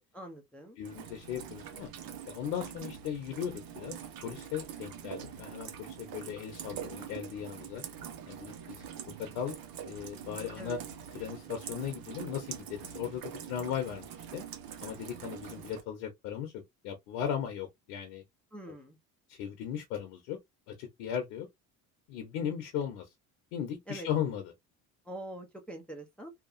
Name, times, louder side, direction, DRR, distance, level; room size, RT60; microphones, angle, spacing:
voice 1, 0.1-0.8 10.6-10.8 18.5-19.0 23.9-24.1 25.0-26.3, right 1 dB, 5° left, 0.7 m, -44 dB
voice 2, 0.8-1.9 2.3-4.0 4.2-7.8 8.3-9.6 9.8-10.8 11.1-14.1 14.3-14.4 14.8-18.2 18.7-18.8 19.3-20.4 20.7-21.5 22.1-23.1 23.5-24.5, left 9 dB, 85° left, 0.9 m, -37 dB
Rain, 0.8-15.8, right 8 dB, 55° right, 0.8 m, -44 dB
2.8 x 2.3 x 2.5 m
supercardioid pair, 75°, 43 cm